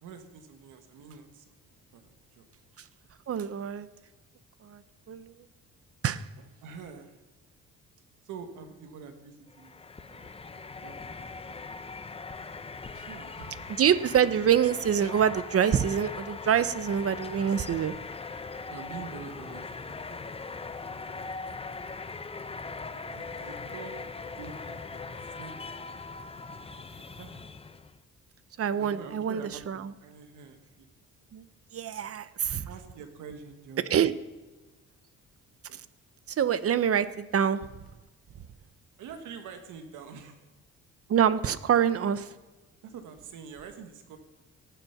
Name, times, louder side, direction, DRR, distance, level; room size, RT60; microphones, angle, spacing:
voice 1, 0.0-2.4 6.6-7.2 8.2-9.8 10.1-11.7 12.9-13.7 18.7-20.2 20.4-21.4 22.9-26.0 26.6-27.3 28.8-30.9 31.8-32.0 32.7-33.9 39.0-40.4 42.8-44.2, right 6 dB, 85° right, 6 dB, 1.6 m, -47 dB
voice 2, 3.3-3.9 4.6-4.8 5.1-5.3 6.0-6.2 13.7-18.0 27.2-27.3 28.6-29.9 31.3-31.4 31.7-32.7 33.9-34.1 35.7-35.8 36.3-37.6 41.1-42.3, right 8 dB, 50° right, 14 dB, 0.8 m, -26 dB
sound 1, 9.5-28.0, left 4 dB, 20° left, 0.7 m, -40 dB
18.5 x 7.0 x 5.9 m, 1.2 s
cardioid pair, 90°, 30 cm